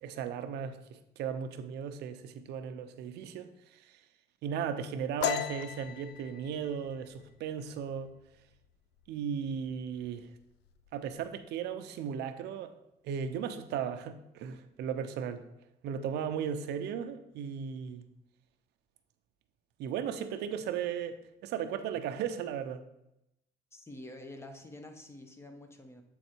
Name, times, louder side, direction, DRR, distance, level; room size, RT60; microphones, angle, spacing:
voice 1, 0.0-4.0 4.4-8.1 9.1-10.3 10.9-12.7 13.0-15.4 15.8-18.0 19.8-22.8, right 7 dB, 80° right, 0.7 m, -36 dB
sound 1, 5.2-8.6 9.0-9.3 9.7-10.2 10.5-11.2, left 10 dB, 85° left, 0.4 m, -37 dB
voice 2, 23.7-26.0, left 1 dB, 15° left, 1.0 m, -48 dB
8.0 x 3.9 x 4.4 m
cardioid pair, 110°, 17 cm